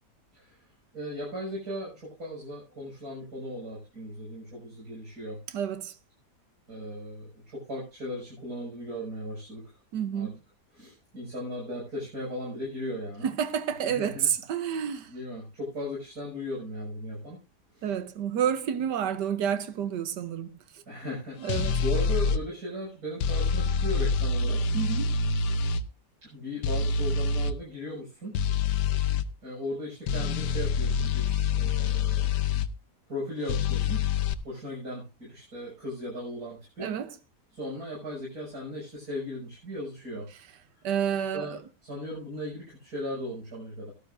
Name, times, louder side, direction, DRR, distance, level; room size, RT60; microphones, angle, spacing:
voice 1, 0.9-5.4 6.7-9.7 10.1-10.3 10.7-13.3 13.8-14.3 14.6-14.8 15.1-17.4 17.8-17.9 20.9-24.7 26.2-28.4 28.7-28.9 29.4-32.3 33.1-34.1 34.4-37.0 37.5-40.3 41.3-43.9, left 1 dB, 65° right, 6.9 m, -37 dB
voice 2, 5.5-5.9 9.9-10.4 13.2-15.1 17.8-20.5 21.4-21.8 24.7-25.1 36.8-37.1 40.8-41.6, right 8 dB, 90° right, 1.5 m, -29 dB
sound 1, 21.5-22.4 23.2-25.8 26.6-27.5 28.3-29.3 30.1-32.7 33.5-34.3, left 5 dB, 80° left, 1.4 m, -26 dB
18.0 x 12.0 x 2.6 m
omnidirectional pair, 1.8 m